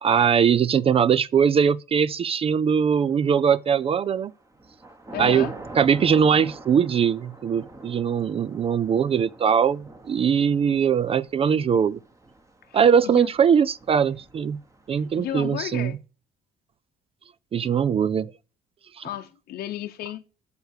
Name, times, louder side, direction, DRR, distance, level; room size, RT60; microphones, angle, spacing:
voice 1, 0.0-4.3 5.2-5.5 5.7-12.0 12.7-14.6 14.9-15.9 17.5-18.3 19.0-19.1, right 7 dB, 35° right, 0.4 m, -21 dB
Thunder / Rain, 3.2-3.8 4.2-15.3, right 2 dB, 20° right, 1.3 m, -44 dB
voice 2, 5.1-5.5 12.7-13.3 15.1-16.0 19.0-20.2, left 12 dB, 70° left, 0.9 m, -33 dB
8.1 x 6.6 x 6.6 m
cardioid pair, 110°, 17 cm